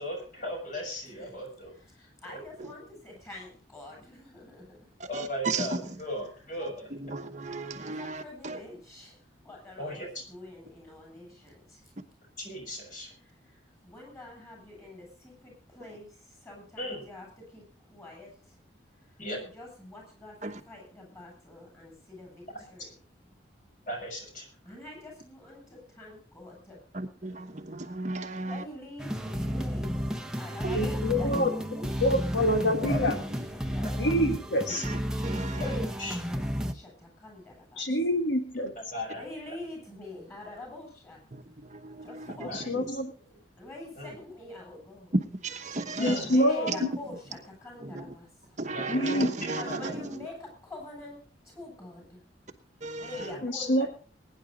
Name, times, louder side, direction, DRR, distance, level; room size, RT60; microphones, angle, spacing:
voice 1, 0.0-1.8 2.2-2.4 5.1-6.9 9.8-10.1 12.4-13.1 16.8-17.0 19.2-19.4 22.5-22.6 23.9-24.5 30.7-31.0 32.3-33.0 33.8-34.1 36.0-36.1 38.8-39.6 42.3-42.7 44.0-44.2 46.0-46.4 48.7-50.0 53.2-53.5, equal, 45° left, 6.3 m, -37 dB
voice 2, 2.2-3.5 3.7-4.6 7.8-9.1 9.4-11.6 13.8-16.1 16.4-17.3 17.5-17.6 17.9-18.3 19.3-20.3 20.7-22.3 22.7-22.9 24.7-25.6 26.0-26.8 28.4-34.0 34.4-34.6 35.6-36.9 37.2-37.8 39.1-41.2 42.0-42.7 43.6-45.1 46.3-48.3 49.4-50.3 50.6-51.2 51.5-52.2 53.0-53.9, left 2 dB, 15° left, 8.0 m, -45 dB
voice 3, 5.0-6.0 6.6-8.6 20.4-20.6 26.9-28.6 30.6-30.8 32.8-33.4 34.7-35.8 41.3-42.9 45.1-46.4 46.7-47.2 47.8-48.1 48.6-50.3 52.8-53.3, right 2 dB, 40° right, 1.0 m, -35 dB
sound 1, 29.0-36.7, equal, 5° right, 0.9 m, -32 dB
voice 4, 30.7-31.5 32.0-33.2 34.0-34.8 37.8-38.7 42.5-43.1 46.0-46.8 48.9-49.3 53.4-53.9, equal, 75° left, 1.6 m, -26 dB
21.0 x 10.0 x 4.0 m
head